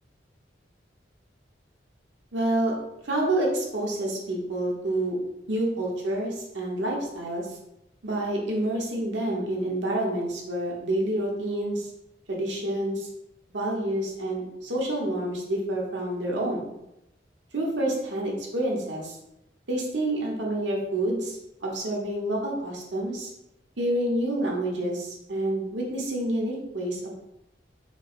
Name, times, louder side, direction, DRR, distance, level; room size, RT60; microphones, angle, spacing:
voice 1, 2.3-2.7 3.1-5.1 5.5-7.4 8.0-11.8 12.3-13.1 13.5-16.6 17.5-19.1 19.7-23.3 23.8-27.1, right 1 dB, 90° right, -2 dB, 1.1 m, -28 dB
5.0 x 2.1 x 4.0 m, 0.86 s
head